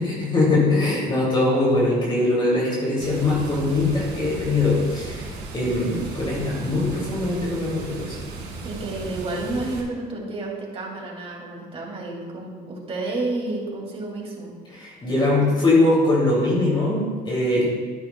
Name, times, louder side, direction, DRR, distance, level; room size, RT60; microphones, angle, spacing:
voice 1, 0.0-8.2 14.7-17.7, left 2 dB, 30° left, -5 dB, 2.8 m, -22 dB
Water, 3.0-9.8, right 3 dB, 85° right, 2.2 m, -35 dB
voice 2, 8.6-14.5, right 2 dB, 35° right, -1 dB, 2.6 m, -30 dB
11.5 x 10.0 x 2.3 m, 1.5 s
cardioid pair, 110°, 17 cm